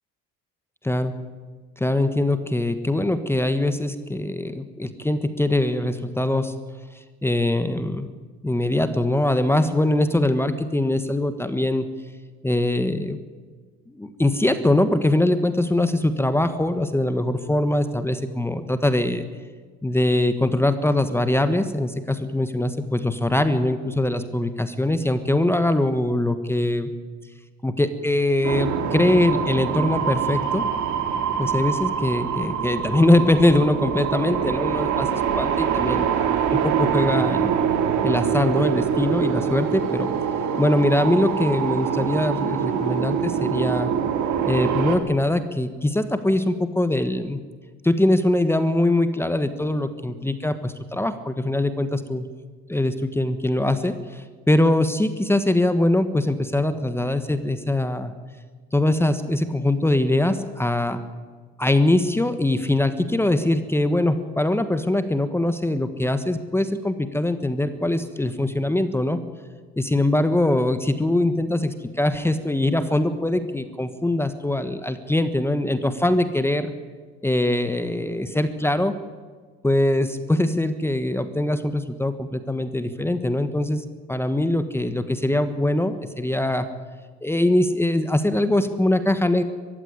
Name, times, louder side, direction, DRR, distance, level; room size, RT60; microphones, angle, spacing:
voice 1, 1.8-6.5 7.2-8.1 8.4-11.9 12.4-13.2 13.9-19.2 19.8-26.9 27.6-30.6 31.4-36.0 36.5-37.6 38.0-40.1 40.6-43.9 44.5-47.4 47.8-52.3 52.7-58.1 58.7-61.0 61.6-69.2 69.8-76.7 77.2-78.9 79.6-86.7 87.2-89.4, left 1 dB, 5° left, 10 dB, 1.3 m, -22 dB
sound 1, 28.4-45.0, right 8 dB, 60° right, 2.9 m, -24 dB
22.0 x 15.5 x 9.5 m, 1.5 s
cardioid pair, 110°, 33 cm